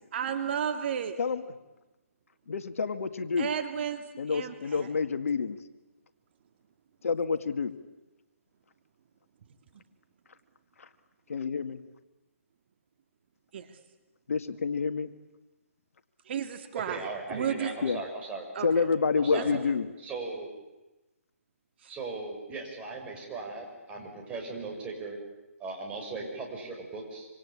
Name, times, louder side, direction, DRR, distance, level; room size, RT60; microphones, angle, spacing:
voice 1, 0.1-1.2 3.4-4.0 4.3-4.9 13.5-13.6 16.3-17.7 18.6-18.9 19.3-19.4, right 8 dB, 45° right, 7 dB, 2.2 m, -32 dB
voice 2, 2.5-3.5 4.2-5.6 7.0-7.7 11.3-11.8 14.3-15.1 17.8-18.0 18.6-19.9, left 5 dB, 70° left, 9 dB, 1.8 m, -28 dB
voice 3, 16.8-18.4 19.1-19.5 20.0-20.5 21.9-25.2 25.6-27.3, right 3 dB, 15° right, 0 dB, 6.4 m, -38 dB
26.5 x 26.0 x 8.6 m, 1.1 s
hypercardioid pair, 150°, 8 cm